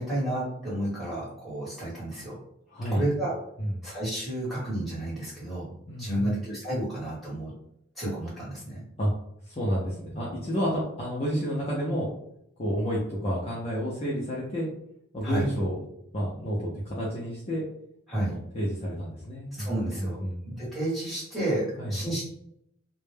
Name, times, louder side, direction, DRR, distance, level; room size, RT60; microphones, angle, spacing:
voice 1, 0.0-2.4 2.9-3.3 3.8-5.7 6.0-7.5 7.9-8.8 15.2-15.5 18.1-18.3 19.5-20.2 20.4-22.2, right 1 dB, ahead, -9 dB, 1.1 m, -31 dB
voice 2, 2.7-3.0 3.6-3.8 5.9-6.3 9.0-9.1 9.4-12.1 12.6-14.7 15.1-15.8 16.1-17.6 18.2-20.5 21.8-22.0, equal, 30° left, -6 dB, 0.5 m, -30 dB
2.1 x 2.0 x 3.2 m, 0.74 s
head